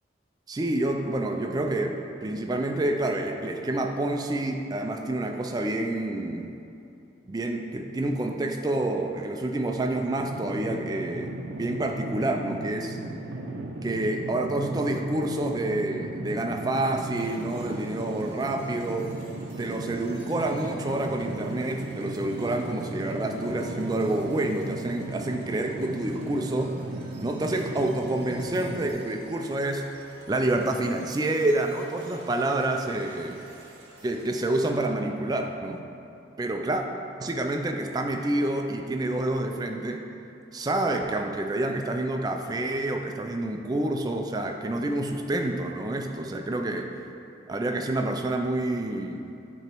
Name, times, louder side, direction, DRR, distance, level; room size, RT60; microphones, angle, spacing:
voice 1, 0.5-6.5 7.3-13.0 13.8-19.1 19.6-26.8 27.2-29.9 30.3-33.4 34.0-35.8 36.4-36.8 37.2-40.0 40.5-47.0 47.5-49.3, right 1 dB, 20° right, 4 dB, 0.3 m, -28 dB
sound 1, 10.2-28.9, right 2 dB, 75° right, 0.5 m, -36 dB
sound 2, 17.1-34.7, right 1 dB, 60° right, 0.9 m, -51 dB
8.0 x 3.0 x 4.5 m, 2.7 s
head